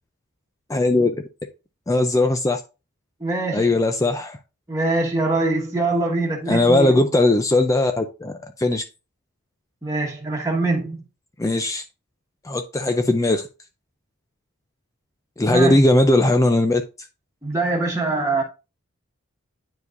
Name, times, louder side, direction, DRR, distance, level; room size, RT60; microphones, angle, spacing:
voice 1, 0.7-1.2 1.9-2.6 3.5-4.4 6.5-8.3 8.6-8.8 11.4-11.8 12.4-13.5 15.4-16.8, left 2 dB, 15° left, 0.4 m, -18 dB
voice 2, 3.2-3.8 4.7-7.1 9.8-11.0 15.5-15.8 17.4-18.4, right 2 dB, 15° right, 1.3 m, -23 dB
9.6 x 4.8 x 2.5 m
head